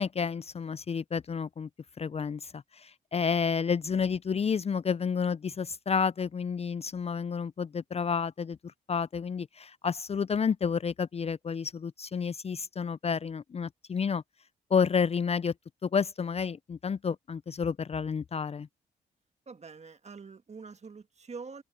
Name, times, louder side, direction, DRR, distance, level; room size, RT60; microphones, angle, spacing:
voice 1, 0.0-1.7 2.0-8.6 8.9-14.2 14.7-15.5 15.8-18.7, left 6 dB, 35° left, 0.5 m, -30 dB
voice 2, 19.5-21.6, right 4 dB, 40° right, 1.7 m, -45 dB
supercardioid pair, 50°, 18 cm